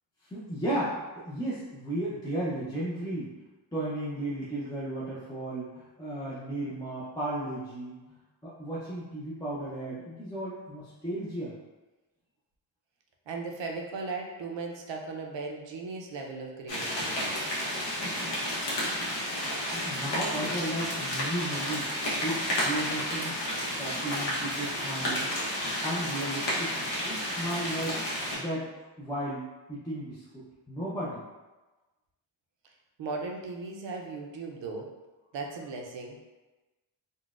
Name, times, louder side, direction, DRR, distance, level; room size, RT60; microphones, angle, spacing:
voice 1, 0.2-3.3 3.7-8.2 8.4-11.5 17.8-18.3 19.4-21.9 22.2-23.4 23.7-25.3 25.8-28.0 28.3-31.2, right 1 dB, 10° left, -9 dB, 0.5 m, -35 dB
voice 2, 13.3-17.3 33.0-34.9 35.3-36.2, right 3 dB, 65° right, 1 dB, 0.6 m, -37 dB
sound 1, 16.7-28.3, equal, 65° left, 1.0 m, -31 dB
3.9 x 2.1 x 2.4 m, 1.1 s
wide cardioid pair, 135°, 47 cm